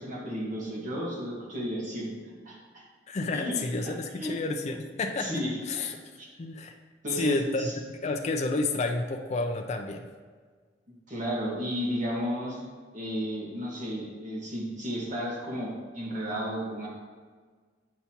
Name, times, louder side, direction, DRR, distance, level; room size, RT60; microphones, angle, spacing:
voice 1, 0.0-2.1 2.5-2.9 3.3-3.5 3.8-4.4 5.2-5.6 6.2-6.3 7.0-7.8 11.1-12.6 12.9-16.9, equal, 45° right, -4 dB, 1.7 m, -33 dB
voice 2, 3.1-5.3 5.7-6.0 6.4-6.7 7.1-7.7 8.0-10.1, left 2 dB, 40° left, 3 dB, 0.4 m, -30 dB
8.3 x 5.5 x 2.9 m, 1.5 s
head